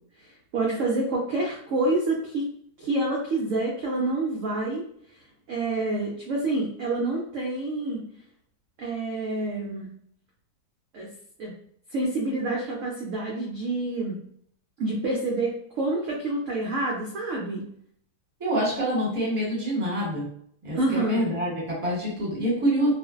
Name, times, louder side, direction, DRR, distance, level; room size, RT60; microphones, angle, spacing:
voice 1, 0.5-2.4 2.8-4.8 5.5-8.0 8.8-9.9 10.9-11.1 11.4-11.5 11.9-14.2 14.8-17.7 20.7-21.3, right 2 dB, 70° right, -2 dB, 0.8 m, -27 dB
voice 2, 18.4-20.3 20.6-22.9, equal, 20° right, -6 dB, 1.0 m, -26 dB
2.5 x 2.4 x 2.3 m, 0.65 s
omnidirectional pair, 1.8 m